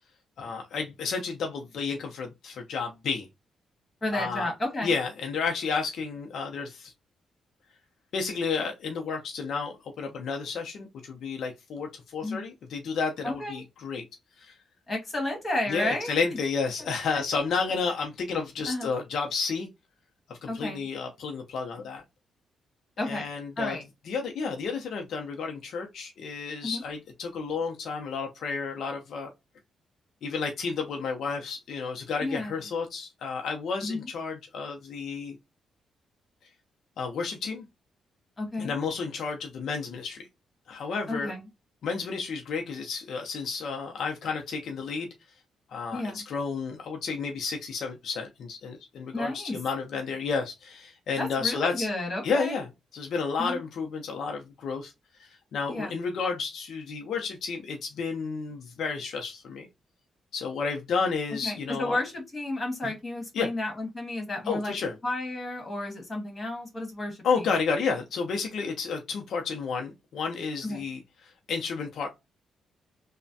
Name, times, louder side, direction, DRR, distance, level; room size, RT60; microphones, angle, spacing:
voice 1, 0.4-3.3 4.1-4.5 4.8-6.9 8.1-14.0 14.4-14.5 15.7-19.7 20.3-22.0 23.1-23.8 24.1-29.3 30.2-35.4 37.0-37.6 38.6-40.3 40.7-41.3 41.8-45.1 45.7-51.9 52.2-52.7 52.9-54.9 55.2-59.7 60.3-62.0 62.8-62.9 63.3-63.5 64.5-64.9 67.2-72.1, left 5 dB, 65° left, 0.5 m, -31 dB
voice 2, 4.0-5.0 12.2-12.4 13.2-13.6 14.9-16.2 16.8-16.9 18.7-18.9 20.5-20.8 23.0-23.3 23.6-23.8 26.6-26.8 32.2-32.5 33.8-34.1 38.4-38.8 41.1-41.4 45.9-46.2 49.1-49.6 51.2-52.6 53.4-53.6 55.7-55.9 61.4-64.7 65.0-67.4 70.6-70.8, left 2 dB, 25° left, 1.5 m, -32 dB
3.2 x 2.1 x 2.6 m
cardioid pair, 125°, 0 cm